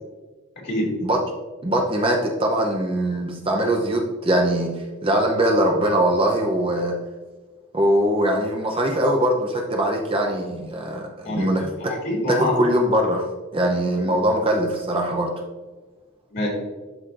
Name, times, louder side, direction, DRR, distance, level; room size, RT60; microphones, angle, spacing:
voice 1, 1.6-6.9 7.7-11.6 12.3-13.3 13.5-15.3, right 1 dB, 25° right, 1 dB, 0.7 m, -21 dB
voice 2, 11.2-12.6 14.0-14.1 16.3-16.5, left 1 dB, 50° left, -2 dB, 2.1 m, -26 dB
12.5 x 4.2 x 2.6 m, 1.3 s
head